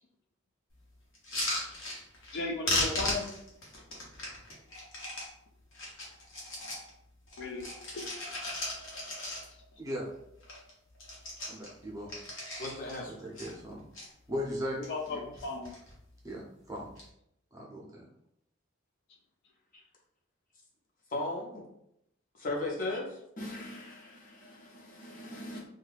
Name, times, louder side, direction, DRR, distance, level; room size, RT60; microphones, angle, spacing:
sound 1, 1.1-2.4 2.6-5.3 5.7-6.9 7.3-9.7 10.1-10.2 10.4-10.7 11.0-13.0 13.3-14.1 14.6-15.1 15.4-15.9 16.8-17.0, left 1 dB, 75° left, 1.0 m, -36 dB
voice 1, 2.3-3.3 7.4-7.7 7.9-8.2 14.8-15.7, left 3 dB, 60° left, 1 dB, 0.4 m, -36 dB
voice 2, 11.5-12.1 13.0-13.8 14.3-14.8 15.1-15.2 16.2-16.9 17.5-18.0, equal, 15° right, -3 dB, 0.6 m, -38 dB
voice 3, 12.6-13.2 21.1-21.7 22.3-25.6, left 2 dB, 40° left, -2 dB, 0.8 m, -37 dB
2.7 x 2.3 x 3.3 m, 0.77 s
head